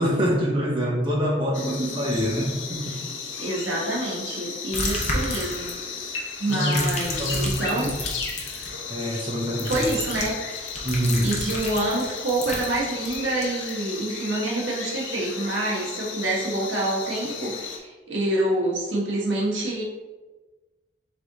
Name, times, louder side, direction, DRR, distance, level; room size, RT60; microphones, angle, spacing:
voice 1, 0.0-2.9 6.5-7.9 8.9-9.9 10.8-11.3, equal, 25° right, -3 dB, 0.7 m, -25 dB
sound 1, 1.5-17.8, left 5 dB, 80° left, 0.7 m, -35 dB
voice 2, 3.4-5.7 6.4-7.9 9.6-10.3 11.2-19.8, right 1 dB, 85° right, -5 dB, 1.3 m, -27 dB
sound 2, 4.7-6.0 6.5-8.7 9.6-13.7, left 2 dB, 35° left, 0.7 m, -31 dB
3.6 x 3.3 x 3.9 m, 1.2 s
head